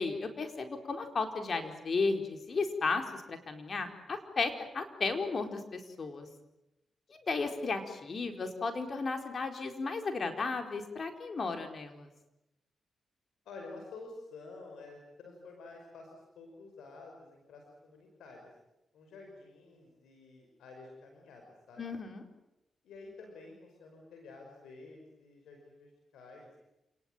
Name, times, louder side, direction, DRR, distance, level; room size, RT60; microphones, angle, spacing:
voice 1, 0.0-6.3 7.1-12.1 21.8-22.2, left 4 dB, 55° left, 6 dB, 4.6 m, -34 dB
voice 2, 13.5-18.5 18.9-21.8 22.8-26.5, left 3 dB, 85° left, 2 dB, 5.4 m, -50 dB
28.0 x 20.0 x 9.2 m, 0.91 s
supercardioid pair, 55°, 0 cm